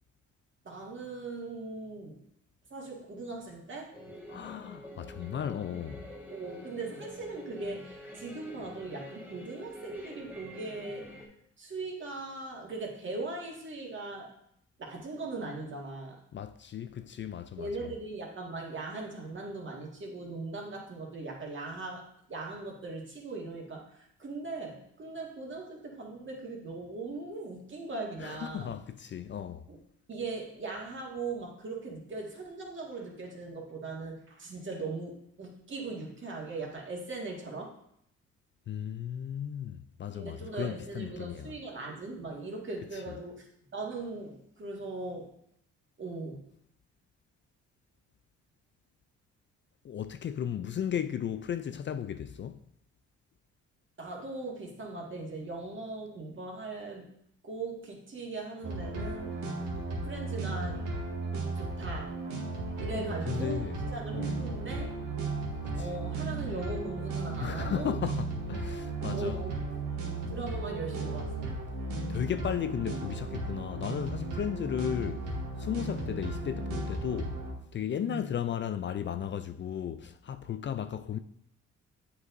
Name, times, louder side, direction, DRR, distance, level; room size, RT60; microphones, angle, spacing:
voice 1, 0.6-2.2 2.7-3.9 6.3-11.1 11.6-14.3 14.8-16.2 17.5-28.7 29.7-29.8 30.1-37.8 40.1-43.5 43.7-45.3 46.0-46.4 54.0-57.1 57.4-59.3 60.0-60.9 61.5-62.2 62.8-64.9 65.7-68.0 69.1-69.5 70.3-71.6 75.8-76.0 78.0-78.3, right 3 dB, 40° right, 1.8 m, -39 dB
sound 1, 3.9-11.3, equal, 5° right, 1.6 m, -47 dB
voice 2, 4.3-6.0 16.3-17.7 28.2-29.6 38.7-41.5 49.8-52.6 62.9-63.8 64.1-64.4 65.6-65.9 67.4-69.4 72.1-75.2 75.6-77.4 77.7-81.2, left 9 dB, 40° left, 0.4 m, -35 dB
sound 2, 58.6-77.5, right 3 dB, 80° right, 1.7 m, -35 dB
8.3 x 4.7 x 2.6 m
cardioid pair, 90°, 30 cm